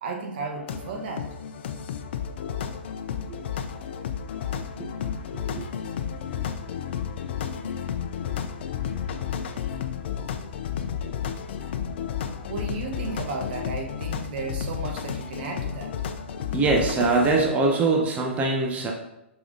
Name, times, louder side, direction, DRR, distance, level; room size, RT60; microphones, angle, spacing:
voice 1, 0.0-1.3 12.5-15.9, right 3 dB, 50° right, 2 dB, 1.4 m, -34 dB
sound 1, 0.6-17.4, left 8 dB, 55° left, 0.7 m, -32 dB
voice 2, 16.5-18.9, right 3 dB, 20° right, 0 dB, 1.2 m, -23 dB
5.9 x 5.8 x 4.0 m, 0.89 s
hypercardioid pair, 120°, 7 cm